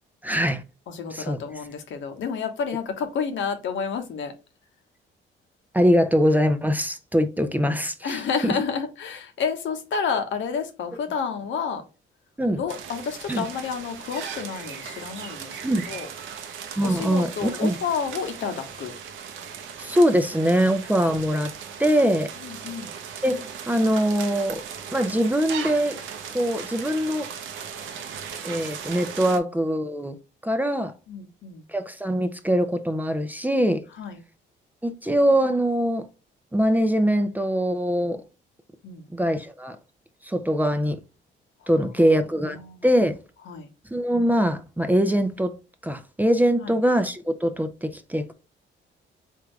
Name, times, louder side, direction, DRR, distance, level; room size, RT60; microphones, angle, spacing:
voice 1, 0.2-0.6 1.1-1.4 5.7-8.5 12.4-12.6 13.3-13.4 15.6-15.9 16.8-17.8 19.8-21.5 21.8-22.3 23.2-24.6 24.9-26.0 26.3-27.3 28.4-30.2 30.4-30.9 31.7-33.8 34.8-36.1 36.5-38.2 39.1-39.8 40.2-41.0 41.7-43.2 43.9-45.5 45.8-48.3, equal, 10° right, 0.6 m, -23 dB
voice 2, 0.9-4.3 8.0-11.8 12.6-15.6 15.9-16.1 16.8-18.9 22.4-22.9 31.1-31.7 34.0-34.2 38.8-39.1 41.6-42.1 42.6-42.8 43.5-43.7 46.6-46.7, left 6 dB, 75° left, 1.0 m, -30 dB
sound 1, 12.7-29.4, right 7 dB, 80° right, 0.8 m, -37 dB
3.6 x 3.4 x 3.1 m
cardioid pair, 90°, 20 cm